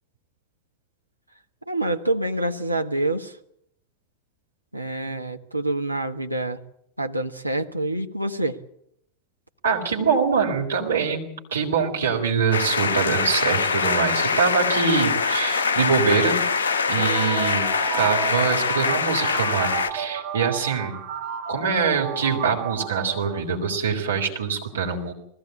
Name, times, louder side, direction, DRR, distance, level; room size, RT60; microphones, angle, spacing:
voice 1, 1.7-3.4 4.7-6.6 7.0-8.6, right 2 dB, 85° right, 6 dB, 1.0 m, -26 dB
voice 2, 9.6-16.4 16.9-17.7 18.0-21.0 21.5-25.1, right 6 dB, 65° right, 1 dB, 3.9 m, -24 dB
sound 1, 12.5-19.9, left 5 dB, 65° left, 1.2 m, -23 dB
sound 2, 17.0-23.8, right 7 dB, 45° right, 2.1 m, -33 dB
20.0 x 15.5 x 8.6 m, 0.76 s
figure-of-eight pair, 90°, 0 cm